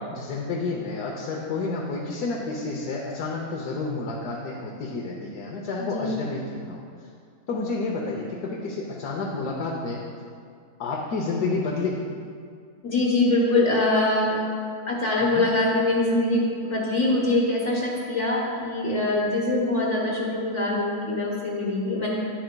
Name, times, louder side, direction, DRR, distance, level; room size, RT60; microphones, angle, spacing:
voice 1, 0.0-6.9 7.5-10.0 10.8-12.0 15.2-15.5, left 3 dB, 75° left, -2 dB, 1.2 m, -30 dB
voice 2, 5.8-6.2 12.8-14.4 14.9-22.1, left 2 dB, 50° left, -5 dB, 1.3 m, -23 dB
10.5 x 7.7 x 2.2 m, 2.2 s
omnidirectional pair, 1.7 m